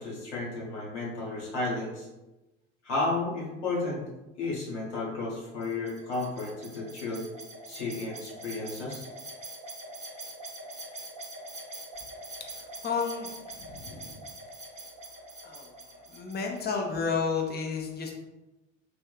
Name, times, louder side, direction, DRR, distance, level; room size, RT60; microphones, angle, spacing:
voice 1, 0.0-2.1 2.8-4.0 4.4-7.3 7.7-9.0, left 2 dB, 75° left, -5 dB, 1.3 m, -33 dB
sound 1, 5.6-16.7, right 1 dB, 20° right, 1.0 m, -44 dB
voice 2, 12.6-14.2 15.4-15.7 16.1-18.1, left 5 dB, 25° left, 1 dB, 0.7 m, -32 dB
3.4 x 2.6 x 2.3 m, 1.0 s
figure-of-eight pair, 65°, 36 cm